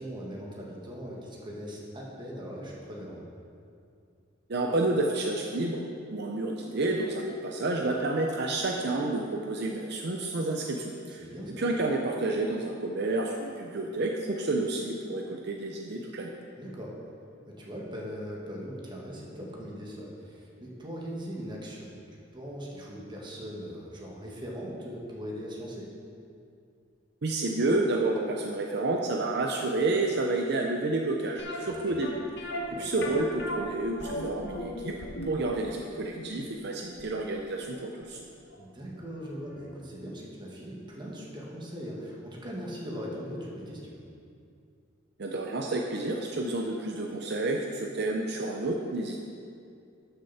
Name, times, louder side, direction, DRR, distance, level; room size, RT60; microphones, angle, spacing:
voice 1, 0.0-3.2 11.2-11.6 16.6-16.9 17.6-25.9 31.6-32.0 32.7-32.9 38.6-44.0, equal, 25° right, -3 dB, 1.8 m, -40 dB
voice 2, 4.5-5.8 6.1-11.3 11.6-16.3 27.2-34.9 35.2-38.2 45.2-49.2, right 2 dB, 60° right, 1 dB, 0.7 m, -30 dB
sound 1, 31.4-38.2 38.5-38.6 39.2-39.3 39.6-39.7, left 1 dB, 65° left, 1.2 m, -38 dB
12.0 x 6.8 x 4.2 m, 2.5 s
head